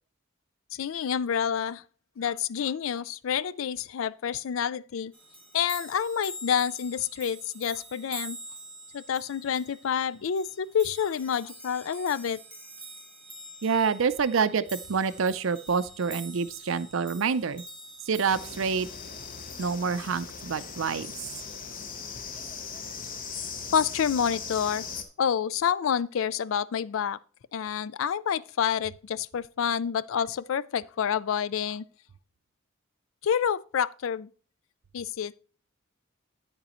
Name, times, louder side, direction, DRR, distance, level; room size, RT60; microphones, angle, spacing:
voice 1, 0.7-1.8 2.2-5.1 5.5-8.4 8.9-12.4 23.7-24.8 25.2-27.2 27.5-31.8 33.2-34.3 34.9-35.4, left 8 dB, 70° left, 0.4 m, -28 dB
sound 1, 5.1-20.1 21.4-21.6, right 1 dB, 5° left, 1.6 m, -46 dB
voice 2, 13.6-17.6 18.1-18.9 19.6-21.2, right 5 dB, 65° right, 0.5 m, -27 dB
sound 2, 18.3-25.0, left 5 dB, 40° left, 0.9 m, -39 dB
9.4 x 8.9 x 3.0 m
head